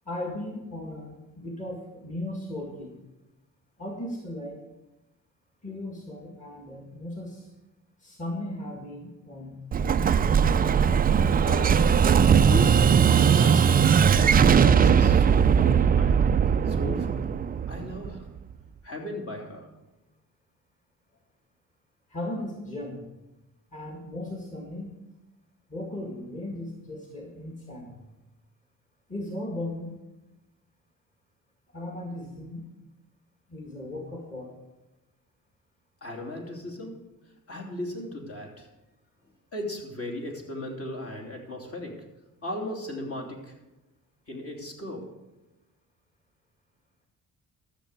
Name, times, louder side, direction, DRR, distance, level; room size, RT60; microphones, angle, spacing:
voice 1, 0.1-3.0 3.8-4.6 5.6-7.5 8.0-10.2 22.1-23.1 23.7-24.9 25.7-28.0 29.1-29.9 31.7-32.7 33.5-34.5, left 1 dB, 20° left, 0 dB, 2.0 m, -37 dB
Explosion, 9.7-18.4, right 7 dB, 25° right, 0.3 m, -20 dB
voice 2, 11.4-12.0 12.4-13.9 14.4-16.4 16.6-17.3 17.7-18.3 18.8-19.7 36.0-38.7 39.5-42.1 42.4-43.6 44.3-45.0, left 1 dB, 40° left, 1 dB, 2.9 m, -36 dB
13.0 x 7.0 x 6.5 m, 1.0 s
cardioid pair, 110°, 35 cm